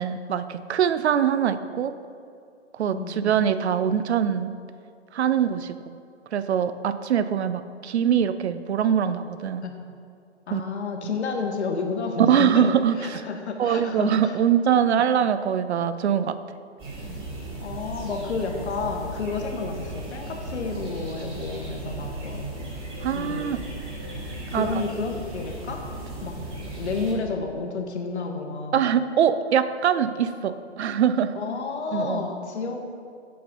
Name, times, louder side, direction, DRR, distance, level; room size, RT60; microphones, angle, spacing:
voice 1, 0.0-1.9 2.7-4.5 5.1-5.8 6.3-9.7 10.5-10.6 12.2-13.3 13.6-16.4 23.0-23.6 24.5-24.7 28.7-31.3 31.9-32.3, right 8 dB, 70° right, 12 dB, 0.5 m, -23 dB
voice 2, 2.9-3.4 9.6-9.7 10.5-14.3 17.6-22.5 23.1-23.6 24.5-25.8 26.2-26.3 26.7-28.8 31.4-32.8, left 4 dB, 70° left, 3 dB, 1.2 m, -30 dB
sound 1, 16.8-27.1, right 2 dB, 15° right, 1.5 m, -36 dB
7.6 x 4.2 x 5.3 m, 2.4 s
hypercardioid pair, 145°, 34 cm